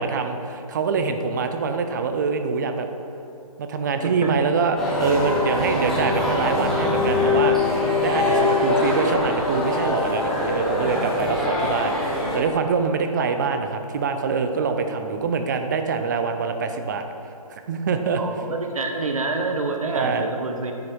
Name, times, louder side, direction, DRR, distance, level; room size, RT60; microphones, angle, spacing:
voice 1, 0.0-2.9 3.6-7.6 8.0-17.0 17.5-18.2 19.9-20.3, right 5 dB, 30° right, 7 dB, 0.5 m, -25 dB
sound 1, 4.8-12.4, left 2 dB, ahead, 1.1 m, -23 dB
voice 2, 18.1-20.7, right 3 dB, 65° right, 4 dB, 1.1 m, -28 dB
9.1 x 6.0 x 4.5 m, 2.7 s
figure-of-eight pair, 140°, 19 cm